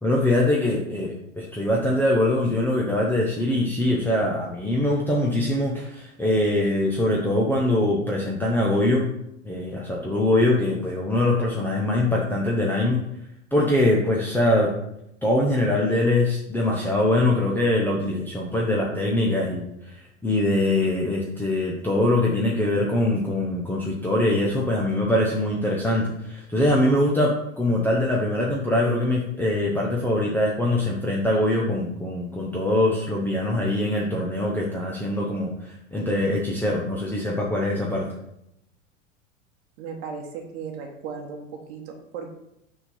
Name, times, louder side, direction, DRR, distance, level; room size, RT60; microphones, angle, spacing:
voice 1, 0.0-9.1 9.4-13.0 13.5-14.7 15.2-38.0, left 1 dB, 5° left, -3 dB, 0.9 m, -23 dB
voice 2, 39.8-42.3, right 5 dB, 50° right, 2 dB, 1.3 m, -36 dB
6.1 x 3.8 x 5.4 m, 0.81 s
figure-of-eight pair, 90°, 39 cm